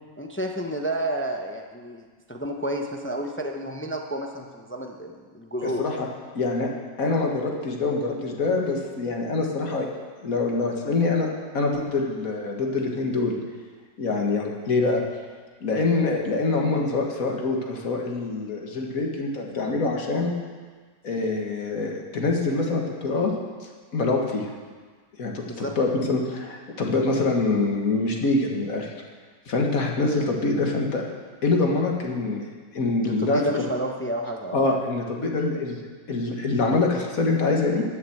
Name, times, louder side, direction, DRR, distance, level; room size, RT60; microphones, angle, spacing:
voice 1, 0.2-5.8 25.5-25.7 33.0-34.6, right 1 dB, 10° left, 2 dB, 0.5 m, -30 dB
voice 2, 5.6-6.1 6.3-6.7 7.0-9.9 10.2-11.3 11.5-13.4 14.0-15.0 15.6-20.3 21.0-23.3 23.9-24.5 25.2-28.9 29.5-31.0 31.4-32.4 32.7-33.7 34.5-35.8 36.1-37.8, left 3 dB, 60° left, 0 dB, 2.0 m, -25 dB
12.0 x 7.3 x 7.8 m, 1.5 s
omnidirectional pair, 1.7 m